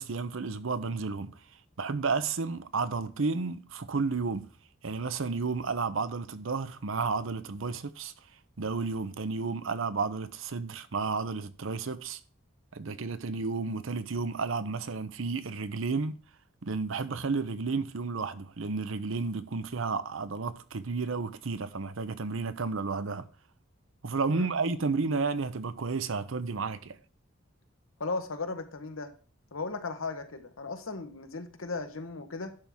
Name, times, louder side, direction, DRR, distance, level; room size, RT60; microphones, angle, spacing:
voice 1, 0.0-1.4 1.8-4.5 4.8-8.1 8.6-12.2 12.7-16.2 16.6-23.3 24.0-27.0, right 4 dB, 70° right, 0.7 m, -32 dB
voice 2, 28.0-29.1 29.5-32.6, left 3 dB, 80° left, 1.1 m, -36 dB
11.0 x 3.6 x 6.1 m
head